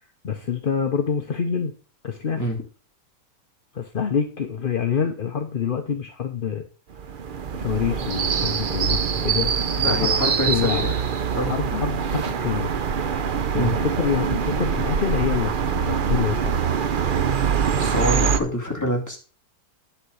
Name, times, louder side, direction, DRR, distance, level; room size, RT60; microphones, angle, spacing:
voice 1, 0.2-1.7 2.0-2.4 3.7-6.6 7.5-9.5 9.9-10.8 11.5-12.7 13.5-15.6 15.8-16.5, left 7 dB, 45° left, 6 dB, 0.7 m, -26 dB
sound 1, 6.9-18.4, right 6 dB, 60° right, 0.5 m, -24 dB
voice 2, 9.7-10.9 11.3-11.5 13.5-13.7 17.7-19.2, equal, 10° left, -1 dB, 2.3 m, -26 dB
10.0 x 4.4 x 6.4 m, 0.38 s
omnidirectional pair, 1.8 m